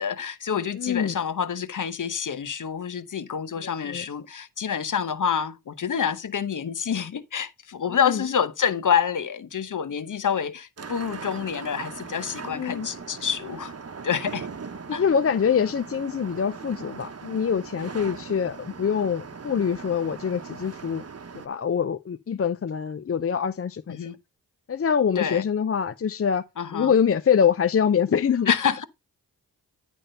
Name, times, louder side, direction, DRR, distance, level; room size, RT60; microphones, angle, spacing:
voice 1, 0.0-13.7 14.0-14.5 14.9-15.0 23.9-24.2 25.1-25.4 26.6-26.9 28.5-28.8, left 7 dB, 50° left, 1.0 m, -27 dB
voice 2, 0.7-1.1 3.6-4.0 7.9-8.2 12.4-12.9 14.9-21.0 21.3-24.1 24.7-26.4 26.7-28.5, left 7 dB, 35° left, 0.6 m, -24 dB
sound 1, 10.8-21.5, right 5 dB, 40° right, 1.1 m, -39 dB
10.0 x 3.6 x 5.6 m
supercardioid pair, 45°, 39 cm